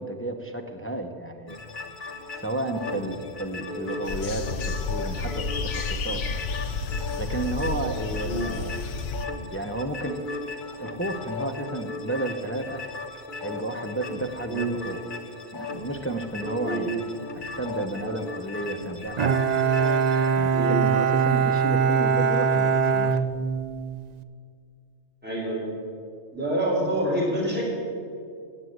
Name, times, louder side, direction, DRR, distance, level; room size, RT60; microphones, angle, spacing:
voice 1, 0.0-1.6 2.4-6.2 7.2-8.7 9.5-10.2 10.8-12.8 13.4-15.0 15.5-16.9 17.3-19.1 20.4-23.2, right 2 dB, 10° left, 4 dB, 0.8 m, -32 dB
sound 1, 1.5-20.3, left 3 dB, 45° left, 1.3 m, -37 dB
sound 2, 4.0-9.3, left 4 dB, 80° left, 1.1 m, -31 dB
Bowed string instrument, 19.2-24.0, right 6 dB, 50° right, 0.5 m, -22 dB
voice 2, 25.2-25.7 26.3-27.6, right 1 dB, 10° right, -4 dB, 3.7 m, -26 dB
17.5 x 8.0 x 8.0 m, 2.3 s
omnidirectional pair, 1.2 m